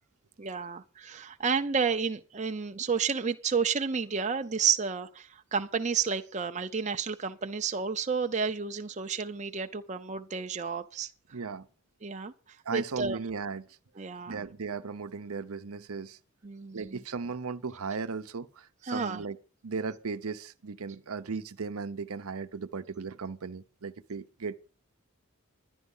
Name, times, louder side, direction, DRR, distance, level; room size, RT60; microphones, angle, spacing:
voice 1, 0.4-11.1 12.0-12.3 12.7-13.2 14.0-14.4 16.4-17.0 18.9-19.2, right 5 dB, 30° right, 0.6 m, -31 dB
voice 2, 11.3-11.7 12.6-13.7 14.3-16.2 16.7-19.4 19.6-24.6, right 4 dB, 80° right, 0.7 m, -36 dB
11.0 x 10.5 x 5.5 m
head